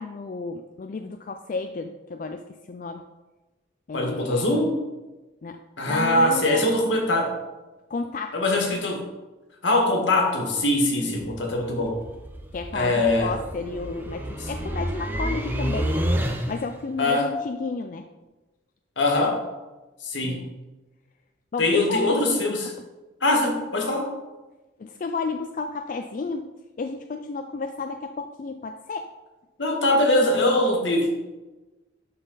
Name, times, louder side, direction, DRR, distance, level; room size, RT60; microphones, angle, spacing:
voice 1, 0.0-3.0 3.9-4.5 5.4-6.6 7.9-8.4 11.0-11.4 12.5-15.9 16.5-18.1 20.2-20.5 21.5-22.2 24.8-26.5 26.8-29.1, left 4 dB, 45° left, 6 dB, 0.3 m, -32 dB
voice 2, 3.9-4.8 5.8-7.4 8.3-9.1 9.6-12.0 12.7-13.4 14.4-14.5 17.0-17.3 19.0-19.4 20.0-20.5 21.6-22.7 23.2-24.1 29.6-31.1, left 1 dB, 75° left, 1 dB, 1.7 m, -22 dB
sound 1, 11.1-16.8, equal, 10° right, 0.6 m, -30 dB
11.5 x 4.0 x 4.0 m, 1.1 s
head